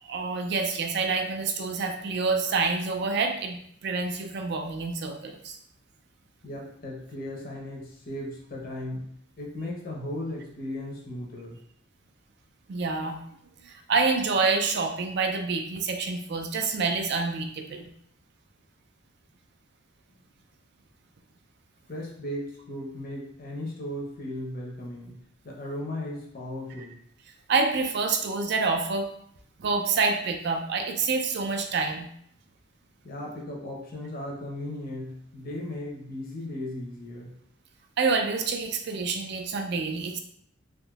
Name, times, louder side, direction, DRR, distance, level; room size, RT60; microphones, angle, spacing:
voice 1, 0.0-5.6 12.7-13.2 13.6-17.9 27.5-29.1 29.6-32.1 38.0-40.2, right 4 dB, 55° right, 5 dB, 0.4 m, -27 dB
voice 2, 6.4-9.1 9.4-11.6 21.9-25.2 25.4-27.0 33.0-37.3, left 1 dB, 45° left, -2 dB, 0.8 m, -36 dB
3.6 x 2.5 x 2.3 m, 0.69 s
head